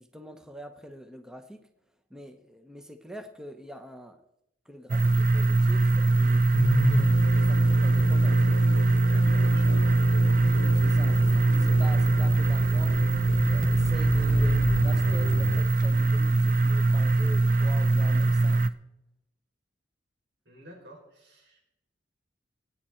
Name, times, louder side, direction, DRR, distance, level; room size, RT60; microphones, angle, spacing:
voice 1, 0.0-1.7 2.1-4.2 4.7-8.5 10.7-13.0 13.5-18.6, equal, 5° right, 7 dB, 0.8 m, -45 dB
sound 1, 4.9-18.7, right 2 dB, 50° right, 0.6 m, -22 dB
sound 2, 6.5-15.6, left 3 dB, 70° left, 0.8 m, -33 dB
voice 2, 9.0-10.2 20.4-21.7, right 1 dB, 85° right, -2 dB, 6.6 m, -49 dB
22.5 x 9.1 x 4.3 m, 0.84 s
head